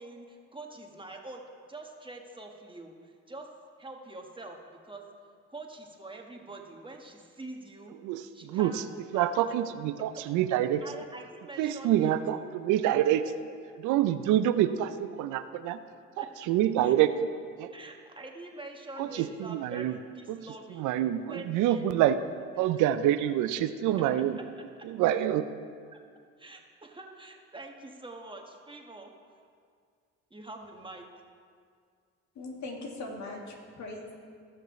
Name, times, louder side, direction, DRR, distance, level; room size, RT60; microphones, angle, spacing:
voice 1, 0.0-3.5 3.8-5.1 5.5-7.9 8.3-9.3 10.8-12.5 16.2-16.3 16.8-17.0 17.7-20.9 21.3-21.9 24.6-24.7 25.9-26.1 26.4-29.5 30.3-31.1, right 2 dB, 15° right, 2 dB, 1.5 m, -45 dB
voice 2, 8.0-8.7 9.1-10.8 11.6-13.2 13.8-15.8 16.2-17.3 17.6-17.7 19.0-19.9 20.3-20.5 20.7-22.2 22.6-24.4 24.9-25.4, right 12 dB, 70° right, 11 dB, 0.6 m, -26 dB
voice 3, 32.3-34.3, left 2 dB, 65° left, 0 dB, 2.2 m, -40 dB
17.5 x 6.6 x 3.2 m, 2.1 s
supercardioid pair, 60°, 31 cm